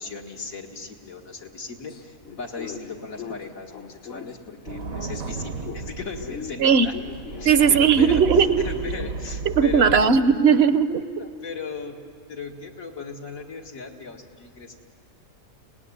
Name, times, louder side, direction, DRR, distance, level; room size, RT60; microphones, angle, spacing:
voice 1, 0.0-6.9 7.4-8.2 8.6-10.1 11.2-12.0 12.3-14.8, left 4 dB, 80° left, 1 dB, 2.4 m, -37 dB
sound 1, 1.9-5.3 5.6-9.0, left 7 dB, 50° left, 1.1 m, -40 dB
sound 2, 4.7-10.0, right 4 dB, 80° right, 1.5 m, -34 dB
voice 2, 6.6-6.9 7.4-8.7 9.5-11.0, right 6 dB, 55° right, 12 dB, 0.9 m, -18 dB
25.5 x 18.5 x 9.8 m, 2.2 s
omnidirectional pair, 1.4 m